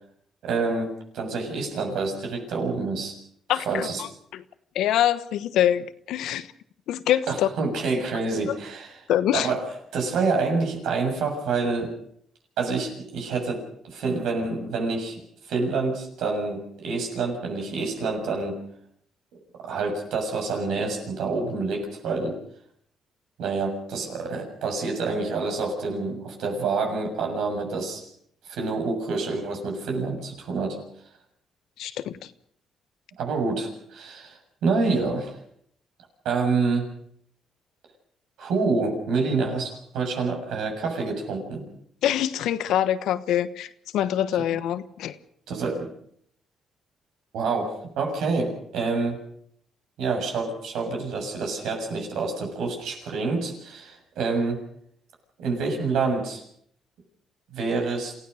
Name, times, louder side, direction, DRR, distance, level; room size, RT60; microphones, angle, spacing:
voice 1, 0.4-3.2 3.7-4.0 7.3-9.0 9.3-9.6 9.9-11.9 12.6-15.2 15.5-18.6 19.6-22.4 23.4-28.1 28.5-30.8 33.2-35.4 36.3-36.9 38.4-41.7 45.5-45.9 47.3-49.2 50.0-54.6 55.4-56.4 57.5-58.2, right 4 dB, 85° right, 2 dB, 6.9 m, -27 dB
voice 2, 3.5-4.4 4.7-6.5 6.9-7.5 8.5-8.6 9.1-9.5 31.8-32.3 42.0-45.2, left 11 dB, 85° left, 13 dB, 1.1 m, -25 dB
28.0 x 16.0 x 6.5 m, 0.67 s
cardioid pair, 90°, 0 cm